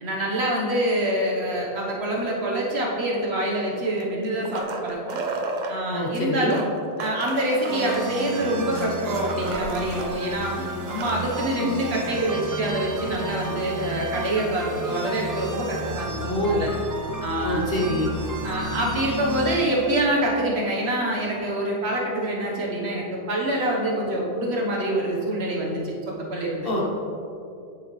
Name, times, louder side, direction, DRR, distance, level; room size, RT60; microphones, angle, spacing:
voice 1, 0.0-5.2 5.7-6.6 7.0-16.7 17.2-17.6 18.4-26.7, right 1 dB, 90° right, -3 dB, 1.6 m, -26 dB
sound 1, 3.8-5.7 6.4-10.1 10.4-10.5 10.8-11.6 13.1-13.2, right 3 dB, 50° right, 0.7 m, -33 dB
voice 2, 5.9-6.5 16.1-16.7 17.4-18.1 26.6-26.9, left 1 dB, 65° left, -1 dB, 1.3 m, -25 dB
sound 2, 7.7-20.0, right 2 dB, 30° right, 0.3 m, -32 dB
9.1 x 7.8 x 3.3 m, 2.6 s
omnidirectional pair, 1.0 m